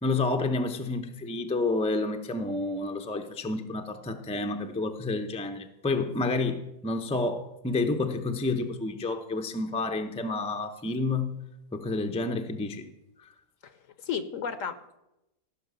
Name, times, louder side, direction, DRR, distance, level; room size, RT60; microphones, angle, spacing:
voice 1, 0.0-11.4 11.7-12.8, left 3 dB, 10° left, 0.4 m, -29 dB
voice 2, 13.6-15.0, left 7 dB, 60° left, 1.0 m, -34 dB
15.0 x 5.9 x 6.9 m
omnidirectional pair, 1.7 m